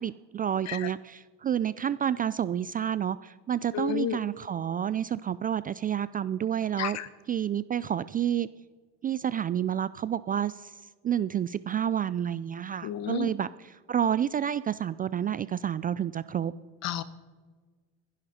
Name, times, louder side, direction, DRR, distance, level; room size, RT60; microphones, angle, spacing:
voice 1, 0.0-7.0 7.3-8.5 9.0-10.7 11.0-16.5, right 9 dB, 25° right, 16 dB, 0.4 m, -29 dB
voice 2, 3.7-4.2 6.8-7.1 12.8-13.3 16.8-17.0, left 10 dB, 45° left, 15 dB, 1.2 m, -31 dB
25.0 x 11.0 x 4.3 m, 1.4 s
hypercardioid pair, 90°, 36 cm